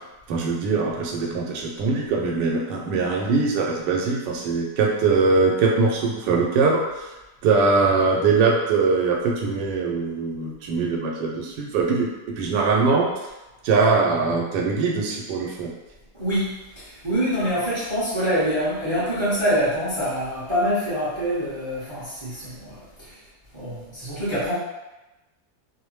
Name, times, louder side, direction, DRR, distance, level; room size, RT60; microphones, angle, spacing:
voice 1, 0.3-7.1 7.4-13.1 13.6-15.7, right 4 dB, 85° right, -2 dB, 1.2 m, -22 dB
voice 2, 16.1-23.2 23.5-24.6, equal, 25° right, -11 dB, 0.6 m, -25 dB
2.9 x 2.0 x 3.1 m, 1.0 s
omnidirectional pair, 1.8 m